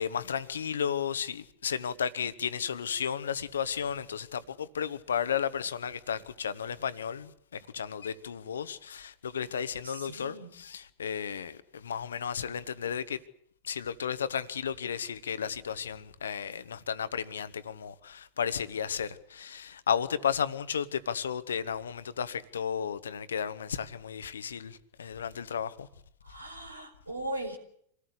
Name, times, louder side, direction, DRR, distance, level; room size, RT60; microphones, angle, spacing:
voice 1, 0.0-13.2 13.6-25.9, left 7 dB, 65° left, 1.3 m, -33 dB
voice 2, 9.8-10.5 26.2-27.6, right 1 dB, 80° right, 4.1 m, -38 dB
26.5 x 18.0 x 8.4 m
figure-of-eight pair, 90°, 0 cm